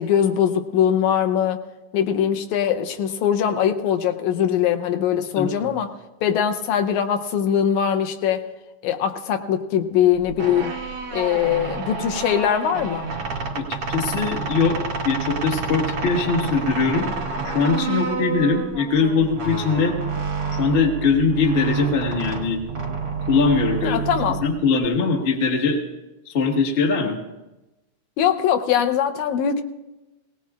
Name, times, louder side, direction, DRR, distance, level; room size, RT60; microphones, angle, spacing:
voice 1, 0.0-1.6 1.9-5.9 6.2-8.5 8.8-10.8 11.1-13.1 23.8-24.4 28.2-29.6, left 9 dB, 80° left, 6 dB, 2.0 m, -21 dB
voice 2, 5.3-5.7 13.5-14.8 15.0-17.1 17.4-20.0 20.5-22.6 23.3-24.0 24.4-25.8 26.3-27.2, left 4 dB, 55° left, 1 dB, 0.6 m, -21 dB
sound 1, 10.2-24.8, right 4 dB, 55° right, 2.3 m, -29 dB
19.0 x 18.5 x 2.4 m, 1.0 s
omnidirectional pair, 3.5 m